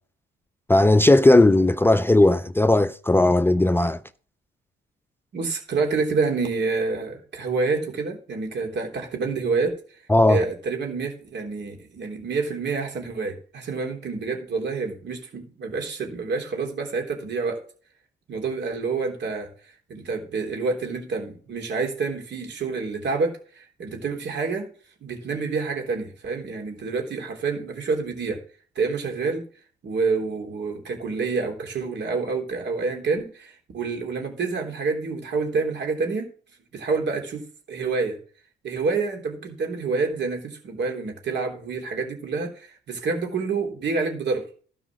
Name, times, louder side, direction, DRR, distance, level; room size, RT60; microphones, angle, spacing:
voice 1, 0.7-4.0 10.1-10.4, left 2 dB, 10° left, 0.4 m, -17 dB
voice 2, 5.3-10.0 10.3-17.6 18.3-24.7 25.0-28.4 28.8-29.4 29.8-36.3 36.7-38.2 38.6-44.5, right 4 dB, 60° right, 3.5 m, -28 dB
12.5 x 4.9 x 6.2 m
cardioid pair, 90°, 20 cm